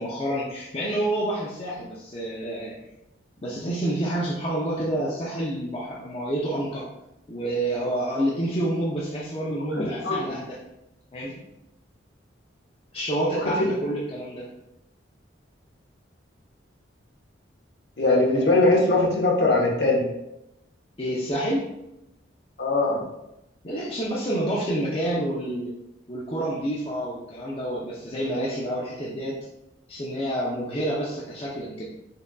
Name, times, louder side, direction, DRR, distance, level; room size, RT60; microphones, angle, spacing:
voice 1, 0.0-2.7 3.4-6.9 7.3-10.6 11.1-11.3 12.9-14.5 21.0-21.7 23.6-25.7 26.1-29.4 29.9-31.9, right 1 dB, 30° left, -5 dB, 0.5 m, -28 dB
voice 2, 18.0-20.0 22.6-23.0, left 2 dB, 60° left, -2 dB, 0.9 m, -20 dB
5.3 x 2.5 x 2.2 m, 0.87 s
head